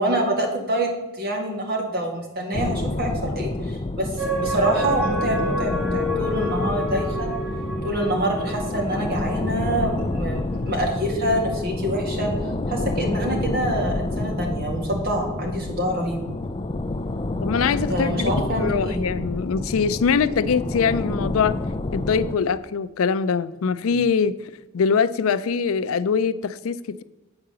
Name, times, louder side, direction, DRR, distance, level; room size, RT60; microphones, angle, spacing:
voice 1, 0.0-7.3 7.8-12.3 12.7-16.2 17.9-19.0, right 1 dB, 50° right, 1 dB, 2.1 m, -26 dB
sound 1, 2.5-22.4, left 2 dB, 25° left, 0.4 m, -28 dB
sound 2, 4.2-9.9 10.4-10.5, equal, 65° right, 2.1 m, -29 dB
voice 2, 17.4-18.3 18.6-21.6 21.9-24.3 24.7-27.0, left 6 dB, 85° left, 15 dB, 0.4 m, -23 dB
8.8 x 4.8 x 6.9 m, 1.0 s
head